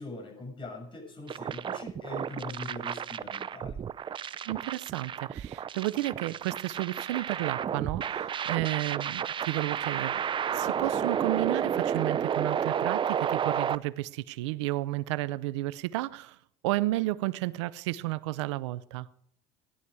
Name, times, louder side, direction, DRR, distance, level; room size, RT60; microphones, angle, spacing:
voice 1, 0.0-3.8, left 2 dB, 35° left, 6.6 m, -42 dB
sound 1, 1.3-13.7, right 8 dB, 35° right, 0.6 m, -31 dB
voice 2, 4.5-10.2 10.5-16.4 16.6-19.1, right 18 dB, 85° right, 0.6 m, -32 dB
16.5 x 11.0 x 4.8 m
supercardioid pair, 85°, 15 cm